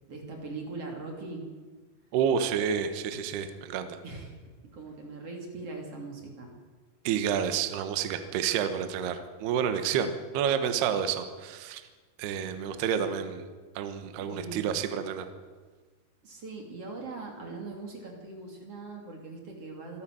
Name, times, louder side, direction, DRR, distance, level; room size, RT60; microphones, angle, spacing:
voice 1, 0.1-1.4 4.0-4.3 4.7-6.5 13.0-13.2 14.2-14.8 16.2-20.0, right 3 dB, 35° right, 1 dB, 3.1 m, -41 dB
voice 2, 2.1-4.0 7.0-11.8 12.2-13.5 13.8-15.3, right 8 dB, 70° right, 8 dB, 2.9 m, -29 dB
25.5 x 13.0 x 7.7 m, 1.4 s
omnidirectional pair, 5.6 m